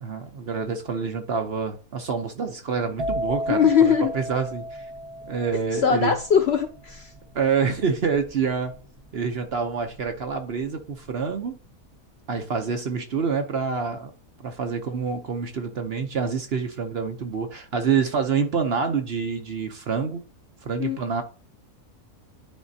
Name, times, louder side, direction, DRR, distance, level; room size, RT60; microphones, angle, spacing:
voice 1, 0.0-4.6 5.2-6.1 7.3-8.7 9.1-11.6 12.3-14.1 14.4-20.2 20.7-21.2, right 5 dB, 50° right, 0.8 m, -27 dB
sound 1, 3.0-10.6 10.8-11.3, equal, 25° right, 0.9 m, -34 dB
voice 2, 3.5-4.1 5.8-7.1 20.8-21.0, left 7 dB, 60° left, 0.7 m, -20 dB
10.5 x 4.1 x 2.7 m
omnidirectional pair, 1.6 m